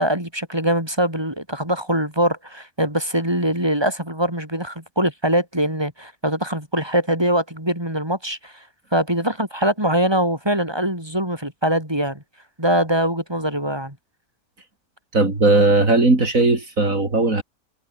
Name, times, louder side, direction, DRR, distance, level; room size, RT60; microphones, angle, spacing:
voice 1, 0.0-8.6 8.9-12.2 12.6-14.0, right 1 dB, 15° right, 6.6 m, -22 dB
voice 2, 15.1-17.4, right 2 dB, 60° right, 4.5 m, -17 dB
omnidirectional pair, 1.6 m